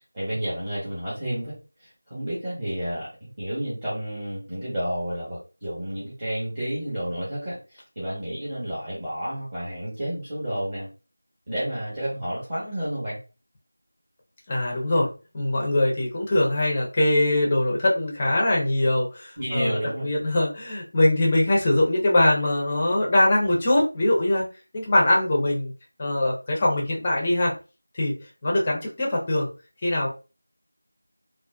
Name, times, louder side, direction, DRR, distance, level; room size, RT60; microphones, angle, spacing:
voice 1, 0.1-10.9 11.5-13.2 19.4-20.1, right 1 dB, 20° right, -11 dB, 1.0 m, -31 dB
voice 2, 14.5-24.5 24.7-25.7 26.0-27.5 28.0-28.2 28.4-29.5 29.8-30.1, left 1 dB, 15° left, -2 dB, 0.5 m, -22 dB
2.3 x 2.2 x 2.3 m, 0.31 s
figure-of-eight pair, 175°, 0 cm